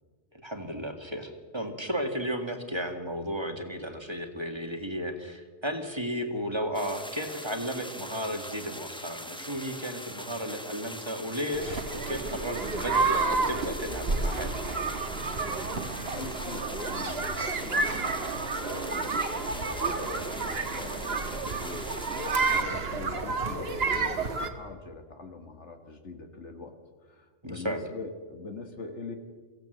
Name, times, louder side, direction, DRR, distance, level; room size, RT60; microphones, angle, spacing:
voice 1, 0.3-14.9 22.5-22.6 27.4-27.8, equal, 25° right, 5 dB, 1.8 m, -34 dB
sound 1, 6.7-22.6, equal, 5° left, 1.2 m, -42 dB
sound 2, 11.5-24.5, right 3 dB, 60° right, 1.7 m, -30 dB
voice 2, 15.7-26.7 27.0-29.2, left 4 dB, 80° left, 5 dB, 1.9 m, -44 dB
23.0 x 16.5 x 7.9 m, 1.5 s
omnidirectional pair, 1.2 m